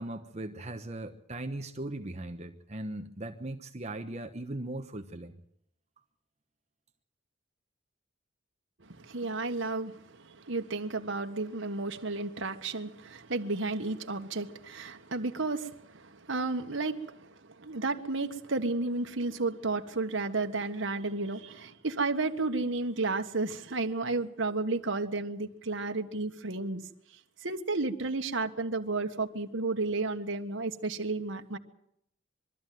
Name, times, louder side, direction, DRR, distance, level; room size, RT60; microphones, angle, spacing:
voice 1, 0.0-5.3, right 1 dB, 35° right, 5 dB, 1.1 m, -39 dB
voice 2, 8.8-26.8 27.4-31.6, right 3 dB, 75° right, 5 dB, 1.5 m, -32 dB
23.0 x 13.5 x 9.3 m, 0.73 s
head